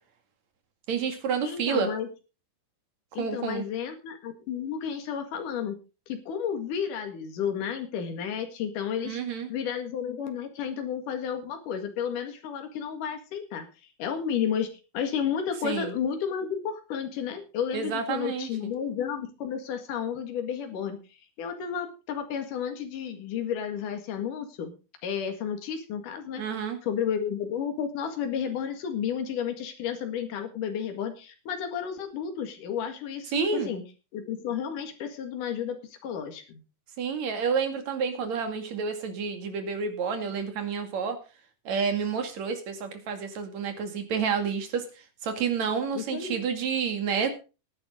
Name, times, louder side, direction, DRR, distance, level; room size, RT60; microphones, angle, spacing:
voice 1, 0.9-1.9 3.2-3.6 9.1-9.5 15.6-15.9 17.7-18.7 26.4-26.8 33.3-33.7 37.0-41.2 41.6-44.8 45.2-47.3, right 6 dB, 60° right, 6 dB, 3.4 m, -29 dB
voice 2, 1.4-2.1 3.1-5.8 6.1-13.7 14.0-14.7 14.9-21.0 21.4-24.7 25.0-33.8 34.1-36.6 45.9-46.4, left 8 dB, 75° left, 5 dB, 3.5 m, -32 dB
18.0 x 9.7 x 3.7 m, 0.32 s
omnidirectional pair, 3.8 m